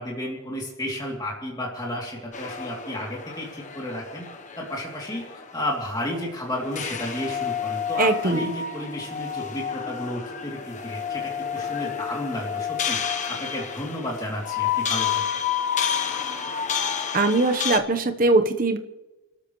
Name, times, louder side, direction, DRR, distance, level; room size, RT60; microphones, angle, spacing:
voice 1, 0.0-4.3 4.6-5.2 5.5-13.0 13.3-15.2, left 1 dB, 20° left, -3 dB, 2.9 m, -32 dB
sound 1, 2.3-17.8, left 7 dB, 35° left, 1.0 m, -30 dB
voice 2, 8.0-8.4 17.1-18.8, right 2 dB, 40° right, 6 dB, 1.0 m, -21 dB
29.0 x 13.0 x 3.2 m, 1.1 s
head